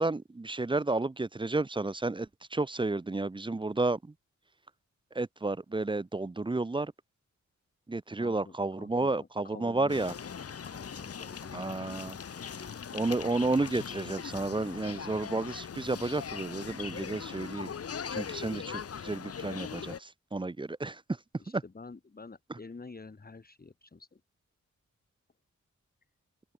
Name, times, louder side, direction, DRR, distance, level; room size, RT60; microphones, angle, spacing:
voice 1, 0.0-4.0 5.2-6.9 7.9-10.1 11.5-12.2 12.9-17.7 18.1-21.0, right 2 dB, 15° right, 0.6 m, -31 dB
voice 2, 8.2-12.8 21.4-24.2, left 4 dB, 30° left, 2.0 m, -49 dB
sound 1, 9.9-20.0, left 7 dB, 50° left, 0.8 m, -40 dB
wide cardioid pair, 125°, 30 cm